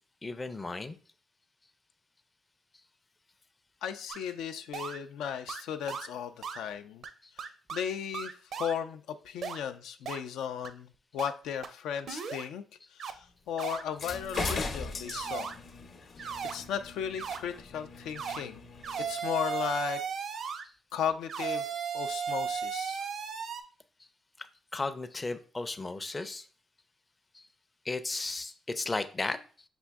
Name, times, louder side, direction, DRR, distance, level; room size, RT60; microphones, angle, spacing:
voice 1, 0.2-1.0 24.7-26.4 27.3-27.4 27.9-29.4, left 3 dB, 25° left, 10 dB, 0.4 m, -34 dB
voice 2, 3.8-7.0 7.4-12.6 12.9-15.5 16.5-18.6 19.1-20.0 20.4-20.6 20.9-21.6 21.9-23.0, left 8 dB, 85° left, 8 dB, 0.3 m, -36 dB
sound 1, 4.1-4.2 4.7-5.0 5.5-5.6 5.9-6.1 6.4-6.6 7.0-7.1 7.4-7.8 8.1-8.7 9.4-9.6 10.1-10.2 10.6-10.7 11.2-11.3 11.6-11.7 12.1-12.5 13.0-13.1 13.6-13.8 14.3-14.6 15.1-15.5 16.2-16.5 17.2-17.4 18.2-18.4 18.8-20.6 21.3-23.6, right 7 dB, 65° right, 0.5 m, -35 dB
sound 2, 13.9-19.1, left 4 dB, 55° left, 0.8 m, -39 dB
5.9 x 2.6 x 3.4 m, 0.40 s
cardioid pair, 90°, 0 cm